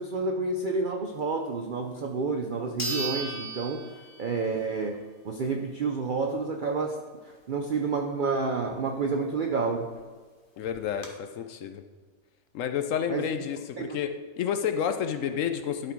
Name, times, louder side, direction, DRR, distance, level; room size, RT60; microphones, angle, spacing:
voice 1, 0.0-3.9 4.2-7.0 7.2-10.0 13.1-13.3 13.8-14.0, right 4 dB, 65° right, 3 dB, 0.5 m, -29 dB
sound 1, 2.0-2.1 2.8-4.5 4.9-5.0 9.6-9.7 10.0-10.1 10.6-11.1, right 2 dB, 40° left, 1.1 m, -35 dB
voice 2, 10.6-11.8 12.5-15.9, left 8 dB, 70° left, 8 dB, 0.8 m, -30 dB
11.5 x 4.2 x 4.5 m, 1.5 s
omnidirectional pair, 1.6 m